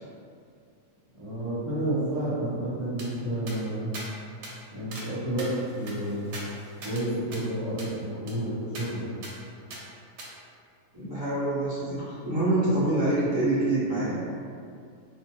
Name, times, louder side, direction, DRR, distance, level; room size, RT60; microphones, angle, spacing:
voice 1, 1.1-4.0 4.7-6.4 6.8-9.0, right 1 dB, 40° right, -13 dB, 0.4 m, -30 dB
sound 1, 3.0-3.1 3.5-3.6 3.9-4.1 4.4-4.5 4.9-5.1 5.4-7.0 7.3-7.4 7.8-7.9 8.3-8.4 8.8-8.9 9.2-9.3 9.7-9.8 10.2-10.3, right 2 dB, 85° right, 1.0 m, -41 dB
voice 2, 10.9-14.2, right 1 dB, 20° right, -12 dB, 0.9 m, -26 dB
2.6 x 2.2 x 2.8 m, 2.3 s
omnidirectional pair, 1.5 m